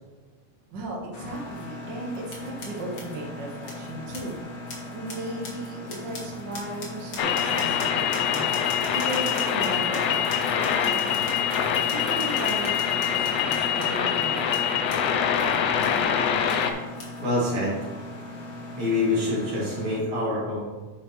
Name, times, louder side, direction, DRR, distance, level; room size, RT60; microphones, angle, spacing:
voice 1, 0.7-4.4 4.9-11.4 11.9-15.0, right 2 dB, 50° right, -2 dB, 1.5 m, -36 dB
Mechanisms, 1.1-20.0, left 2 dB, 60° left, 1.5 m, -39 dB
sound 1, 1.5-1.6 2.3-4.4 4.7-16.0 16.4-16.7 16.9-17.2, left 2 dB, 40° left, 1.4 m, -43 dB
sound 2, 7.2-16.7, left 8 dB, 80° left, 1.5 m, -24 dB
voice 2, 17.2-17.8 18.7-20.7, left 2 dB, 65° right, -5 dB, 3.7 m, -26 dB
9.5 x 6.0 x 3.2 m, 1.3 s
omnidirectional pair, 3.5 m